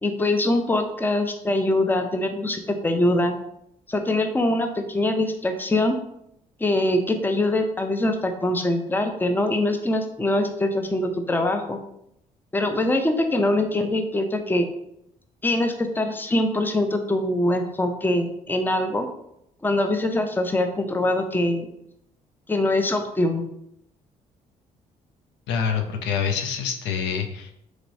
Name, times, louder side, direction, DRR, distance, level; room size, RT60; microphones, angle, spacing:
voice 1, 0.0-3.3 3.9-6.0 6.6-11.8 12.5-14.7 15.4-19.1 19.6-21.7 22.5-23.4, left 1 dB, 10° left, 6 dB, 0.5 m, -23 dB
voice 2, 25.5-27.5, left 7 dB, 75° left, 4 dB, 0.5 m, -26 dB
3.0 x 3.0 x 2.7 m, 0.76 s
hypercardioid pair, 50°, 18 cm